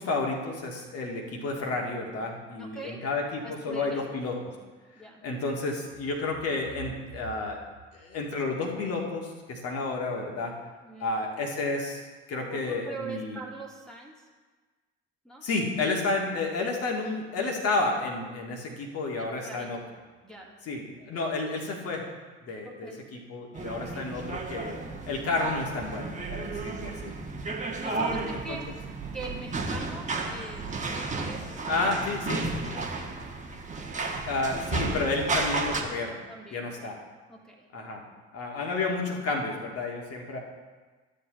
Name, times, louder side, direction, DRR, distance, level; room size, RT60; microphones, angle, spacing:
voice 1, 0.0-4.5 5.2-7.6 7.9-10.5 11.0-12.0 12.3-13.4 15.4-19.8 20.7-22.0 22.4-27.1 27.8-28.6 31.7-32.4 34.3-36.2 36.5-37.0 37.7-38.0 38.3-40.4, left 3 dB, 45° left, 0 dB, 2.0 m, -31 dB
voice 2, 2.6-3.0 3.4-4.1 5.0-5.2 10.8-11.1 12.4-14.3 15.2-15.4 19.2-19.7 20.2-20.6 22.6-23.0 26.7-27.1 27.8-28.7 29.1-32.2 32.6-33.1 36.3-36.9 37.3-37.7, right 2 dB, ahead, -3 dB, 1.9 m, -43 dB
sound 1, 23.5-35.8, right 3 dB, 25° right, 1.2 m, -33 dB
13.0 x 7.9 x 3.1 m, 1.3 s
figure-of-eight pair, 55°, 32 cm